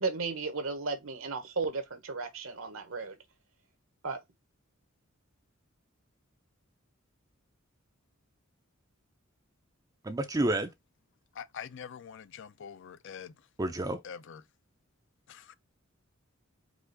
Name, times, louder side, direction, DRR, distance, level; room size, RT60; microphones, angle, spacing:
voice 1, 0.0-3.2 4.0-4.2, right 4 dB, 75° right, 1.1 m, -34 dB
voice 2, 10.0-10.7 13.6-14.0, right 1 dB, 15° right, 0.4 m, -29 dB
voice 3, 11.4-13.3 14.0-14.4 15.3-15.5, left 7 dB, 60° left, 0.5 m, -44 dB
4.8 x 2.5 x 3.8 m
head